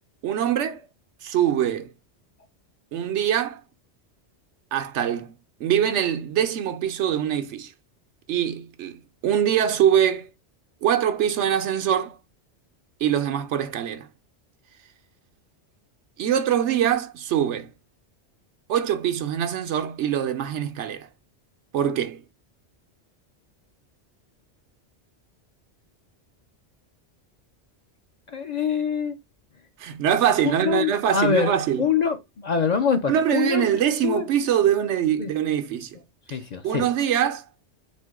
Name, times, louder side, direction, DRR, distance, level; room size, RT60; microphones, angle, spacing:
voice 1, 0.2-0.9 1.2-1.9 2.9-3.6 4.7-5.3 5.6-7.7 8.3-10.3 10.8-12.2 13.0-14.1 16.2-17.7 18.7-21.1 21.7-22.2 29.8-31.9 33.1-36.0 36.6-37.4, right 9 dB, 90° right, 1.0 m, -23 dB
voice 2, 28.3-29.2 30.4-31.5 31.8-33.7 34.0-34.3 35.2-35.3 36.3-36.9, left 6 dB, 50° left, 0.5 m, -24 dB
4.4 x 2.2 x 4.6 m
omnidirectional pair, 1.2 m